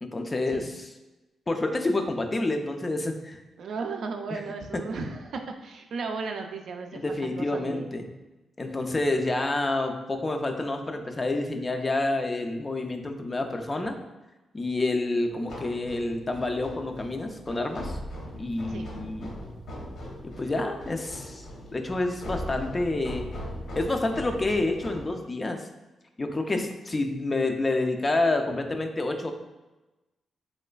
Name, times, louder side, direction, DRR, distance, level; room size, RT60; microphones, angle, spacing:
voice 1, 0.0-0.9 1.5-3.4 4.3-4.4 6.9-8.1 8.6-14.0 14.5-18.0 18.4-19.3 20.2-21.5 21.7-23.3 23.8-25.7 26.2-29.3, left 2 dB, 25° left, 5 dB, 0.3 m, -28 dB
voice 2, 3.6-8.0 18.7-19.0, right 4 dB, 75° right, 4 dB, 0.3 m, -35 dB
sound 1, 15.3-25.1, equal, 75° left, 0.9 m, -39 dB
3.1 x 3.1 x 2.2 m, 1.1 s
cardioid pair, 90°, 0 cm